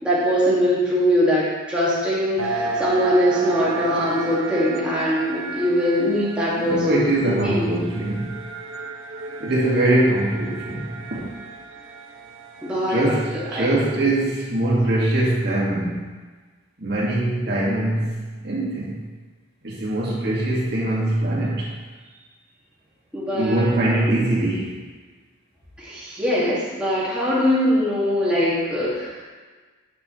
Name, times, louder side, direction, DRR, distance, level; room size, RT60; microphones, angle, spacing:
voice 1, 0.0-7.7 12.6-13.0 13.3-13.6 23.1-23.7 25.8-29.2, equal, 5° right, -9 dB, 2.0 m, -22 dB
sound 1, 2.4-13.8, right 3 dB, 80° right, 0.8 m, -33 dB
voice 2, 6.6-8.4 9.4-11.4 12.9-16.0 16.8-19.0 19.6-21.7 23.3-24.8, right 1 dB, 50° right, -6 dB, 2.0 m, -22 dB
9.1 x 6.7 x 3.2 m, 1.4 s
head